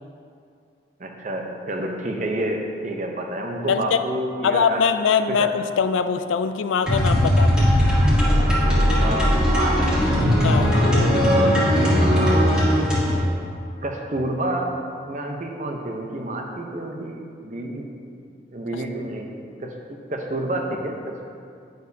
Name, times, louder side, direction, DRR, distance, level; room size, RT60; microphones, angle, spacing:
voice 1, 1.0-4.8 5.3-5.5 9.0-10.1 10.6-11.5 12.0-12.6 13.8-14.7 15.0-18.2 18.5-19.3 19.6-19.7 20.1-21.3, right 1 dB, 40° right, 2 dB, 0.7 m, -29 dB
voice 2, 3.7-4.0 4.4-7.7 10.4-10.7, left 6 dB, 90° left, 10 dB, 0.4 m, -22 dB
sound 1, 6.8-13.1, equal, 5° right, 1.6 m, -18 dB
9.3 x 6.4 x 2.7 m, 2.4 s
head